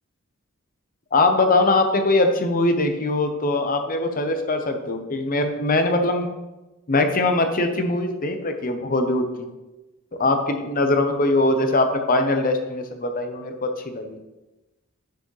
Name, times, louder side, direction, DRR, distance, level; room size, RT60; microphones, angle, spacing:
voice 1, 1.1-6.3 6.9-9.5 10.1-13.5 13.9-14.2, left 2 dB, 40° left, 6 dB, 0.7 m, -21 dB
10.5 x 4.8 x 3.2 m, 1.1 s
head